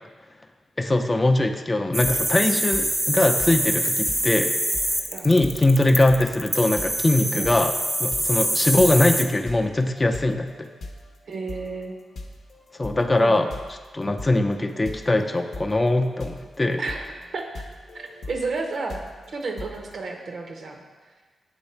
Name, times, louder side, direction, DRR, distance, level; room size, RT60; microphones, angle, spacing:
voice 1, 0.8-4.5 5.2-7.7 8.0-10.7 12.8-16.8, left 2 dB, 30° left, 6 dB, 0.5 m, -21 dB
sound 1, 1.9-9.2, right 1 dB, 20° right, 0.7 m, -25 dB
sound 2, 2.0-2.4 2.7-20.1, left 2 dB, 75° left, 0.6 m, -41 dB
voice 2, 11.3-12.0 13.2-13.5 16.8-17.1 17.3-17.6 17.9-20.8, right 3 dB, 70° right, 3 dB, 0.8 m, -32 dB
7.9 x 3.1 x 4.4 m, 1.4 s
cardioid pair, 55°, 0 cm